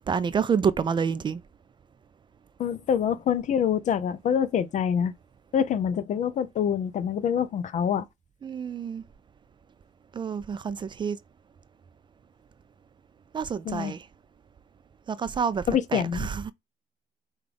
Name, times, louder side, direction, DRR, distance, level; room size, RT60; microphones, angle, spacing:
voice 1, 0.1-1.4 8.4-9.0 10.1-11.2 13.3-14.1 15.1-15.6 15.9-16.5, right 6 dB, 30° right, 0.3 m, -28 dB
voice 2, 2.6-5.1 5.5-8.1 13.7-13.9 15.7-16.3, left 8 dB, 45° left, 0.5 m, -26 dB
5.2 x 2.3 x 3.4 m
cardioid pair, 110°, 17 cm